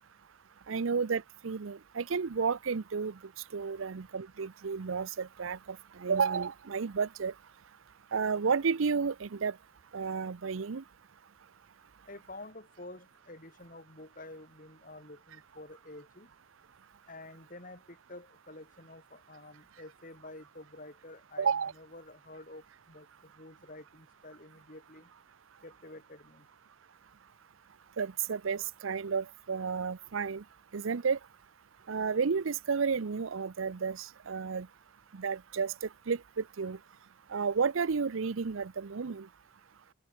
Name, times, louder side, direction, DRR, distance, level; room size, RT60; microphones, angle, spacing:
voice 1, 0.7-3.1 3.5-7.3 8.1-9.5 9.9-10.8 21.4-21.7 28.0-30.4 30.7-31.2 31.9-34.7 35.1-35.7 36.1-36.8 37.3-39.3, right 5 dB, 85° right, 0.6 m, -32 dB
voice 2, 12.1-16.3 17.1-25.1 25.6-26.5, left 2 dB, 45° left, 5.8 m, -49 dB
head